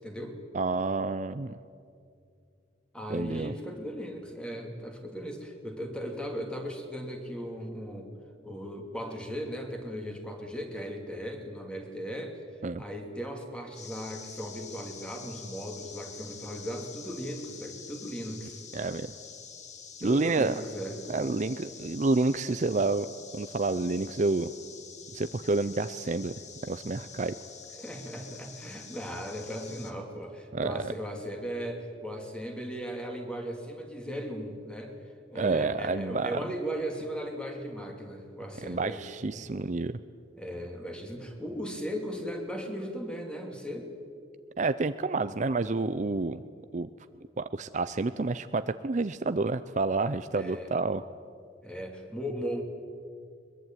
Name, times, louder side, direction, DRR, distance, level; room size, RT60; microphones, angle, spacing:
voice 1, 0.0-0.4 2.9-8.1 8.4-12.4 12.8-18.6 20.0-21.0 27.8-35.0 35.3-39.0 39.4-39.5 40.4-43.9 50.4-50.7 51.6-52.6, equal, 5° left, 3 dB, 2.8 m, -37 dB
voice 2, 0.5-1.5 3.1-3.5 12.6-12.8 18.7-19.1 20.0-20.5 21.1-23.1 23.3-24.5 25.1-26.3 26.7-27.3 30.5-30.9 35.3-36.4 38.6-40.0 44.6-46.4 46.7-46.9 47.4-51.0, right 3 dB, 40° right, 12 dB, 0.5 m, -29 dB
sound 1, 13.8-29.9, left 6 dB, 40° left, 1.8 m, -47 dB
22.0 x 22.0 x 9.2 m, 2.4 s
head